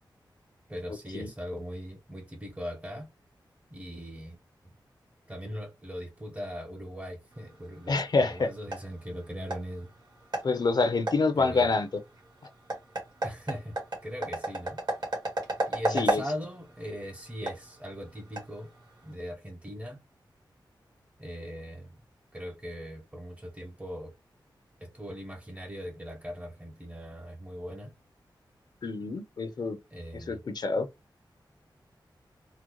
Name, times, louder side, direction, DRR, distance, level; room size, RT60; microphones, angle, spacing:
voice 1, 0.7-3.1 3.7-4.4 4.6-4.7 5.3-9.9 11.4-11.7 13.2-13.8 14.0-14.8 15.7-18.7 19.0-20.0 21.2-22.0 22.3-24.2 24.8-27.9 29.9-30.4, equal, 15° right, 0.7 m, -39 dB
sound 1, 7.3-19.1, right 2 dB, 55° right, 1.5 m, -35 dB
voice 2, 7.9-8.5 10.4-12.0 15.9-16.2 28.8-29.8 30.1-30.9, left 3 dB, 60° left, 0.6 m, -27 dB
3.7 x 2.0 x 3.0 m
wide cardioid pair, 110°, 8 cm